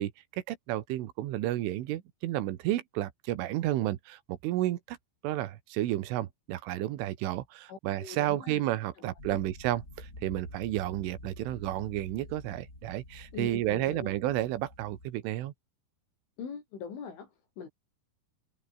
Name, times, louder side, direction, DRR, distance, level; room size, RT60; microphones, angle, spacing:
voice 1, 0.0-5.0 5.2-15.5, right 14 dB, 90° right, 4.0 m, -32 dB
voice 2, 7.7-8.6 9.3-9.4 13.3-14.1 16.4-17.7, left 6 dB, 80° left, 8.0 m, -42 dB
sound 1, 9.2-15.1, left 1 dB, 15° left, 7.9 m, -48 dB
omnidirectional pair, 5.5 m